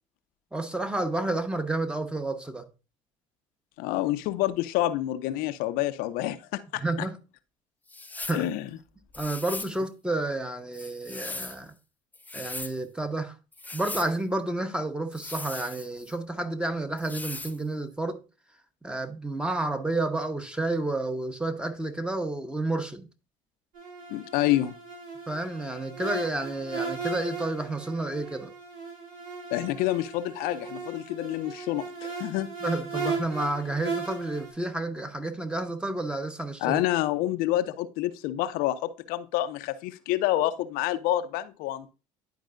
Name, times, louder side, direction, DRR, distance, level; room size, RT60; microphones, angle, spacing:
voice 1, 0.5-2.7 6.8-7.2 8.3-8.5 9.2-11.7 12.3-13.3 13.7-18.2 18.8-23.1 25.3-28.5 32.6-36.8, right 2 dB, 5° right, 1.0 m, -30 dB
voice 2, 3.8-6.8 8.3-8.7 24.1-24.7 29.5-32.5 36.6-41.9, left 14 dB, 70° left, 0.5 m, -28 dB
sound 1, 7.9-8.5 9.1-9.8 10.7-11.6 12.1-12.8 13.5-14.1 15.1-16.1 17.0-17.6, left 3 dB, 10° left, 0.5 m, -39 dB
sound 2, 23.7-34.5, right 4 dB, 60° right, 3.6 m, -37 dB
10.5 x 4.6 x 2.5 m
hypercardioid pair, 70°, 16 cm